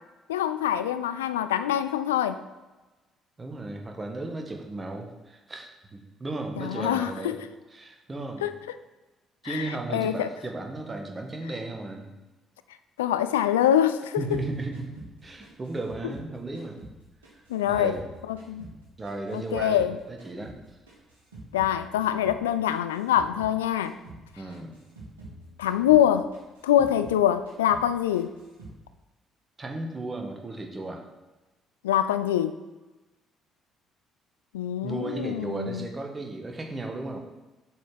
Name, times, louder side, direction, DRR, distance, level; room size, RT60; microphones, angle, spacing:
voice 1, 0.3-2.4 6.6-7.4 8.4-8.5 9.4-10.3 13.0-14.2 17.5-17.9 18.3-18.6 19.3-19.9 21.5-24.0 25.6-26.3 26.6-28.4 31.8-32.6 34.5-35.8, left 10 dB, 75° left, 11 dB, 0.3 m, -24 dB
voice 2, 3.4-7.4 7.7-8.5 9.4-12.1 14.2-14.9 15.2-16.8 17.3-18.0 19.0-20.8 24.4-24.8 29.6-31.1 34.8-37.2, right 2 dB, 25° right, 3 dB, 1.6 m, -35 dB
sound 1, 14.3-17.0 17.2-19.9 20.2-23.6 23.8-24.2 24.5-27.2 27.5-27.9 28.1-28.8, right 2 dB, 75° right, 1.9 m, -46 dB
7.6 x 5.6 x 6.3 m, 1.1 s
figure-of-eight pair, 45°, 0 cm